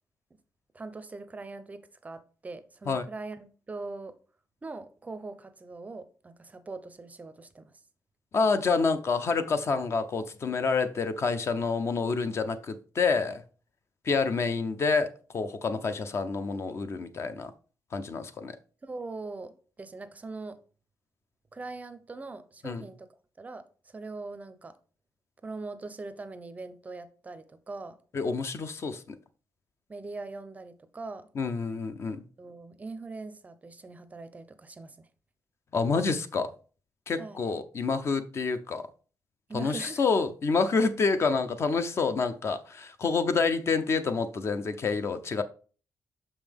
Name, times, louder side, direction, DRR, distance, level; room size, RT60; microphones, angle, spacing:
voice 1, 0.7-4.1 4.6-7.7 18.8-20.6 21.5-23.1 23.4-24.7 25.4-28.0 29.9-31.3 32.4-35.1 37.2-37.4 39.5-40.0, right 3 dB, 20° right, 0.5 m, -41 dB
voice 2, 8.3-13.4 14.0-17.5 17.9-18.6 22.6-22.8 28.1-29.2 31.4-32.2 35.7-36.5 37.1-38.9 39.5-45.4, left 4 dB, 40° left, 0.5 m, -28 dB
6.0 x 5.4 x 3.4 m
wide cardioid pair, 150°, 7 cm